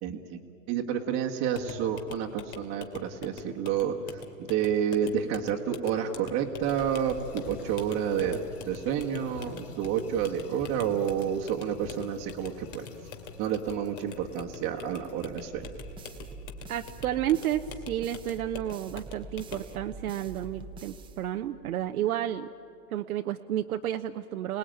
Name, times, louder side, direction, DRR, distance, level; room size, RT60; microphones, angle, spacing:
voice 1, 0.0-0.4 0.7-8.4 8.7-12.9 13.4-15.7, right 8 dB, 25° right, -2 dB, 1.4 m, -30 dB
sound 1, 1.5-19.8, left 6 dB, 45° left, 2.7 m, -45 dB
sound 2, 6.6-17.3, left 4 dB, 30° left, 2.8 m, -48 dB
sound 3, 15.6-21.7, right 3 dB, 10° right, 0.8 m, -45 dB
voice 2, 16.7-22.5 22.9-24.6, right 11 dB, 65° right, 6 dB, 0.9 m, -31 dB
29.0 x 19.5 x 9.0 m, 2.7 s
hypercardioid pair, 135°, 47 cm